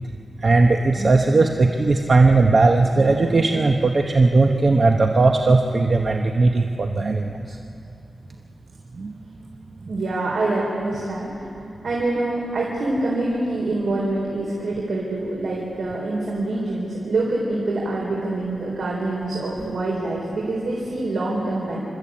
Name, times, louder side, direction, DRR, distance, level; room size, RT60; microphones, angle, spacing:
voice 1, 0.4-7.6 9.0-9.1 19.6-19.8, right 3 dB, 45° right, 3 dB, 0.9 m, -18 dB
voice 2, 9.9-11.5 11.8-21.8, right 2 dB, 80° right, -4 dB, 3.9 m, -25 dB
28.5 x 13.5 x 8.6 m, 2.8 s
wide cardioid pair, 145°, 0 cm